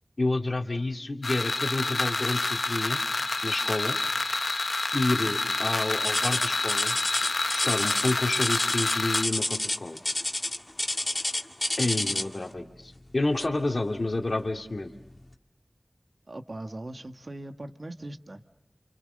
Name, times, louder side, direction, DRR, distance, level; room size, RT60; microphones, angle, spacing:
voice 1, 0.2-3.0 3.4-4.0 4.9-7.0 7.5-10.0 11.8-14.9, left 2 dB, 65° left, 4 dB, 2.3 m, -29 dB
sound 1, 1.2-9.2, left 3 dB, 85° left, 1.2 m, -28 dB
Taxi paper meter, 6.0-12.4 13.4-13.6 14.2-14.3 15.0-15.1, left 1 dB, 40° left, 2.0 m, -29 dB
voice 2, 16.3-18.4, right 1 dB, 60° right, 7 dB, 1.8 m, -40 dB
29.5 x 28.0 x 6.7 m, 0.80 s
wide cardioid pair, 45°, 0 cm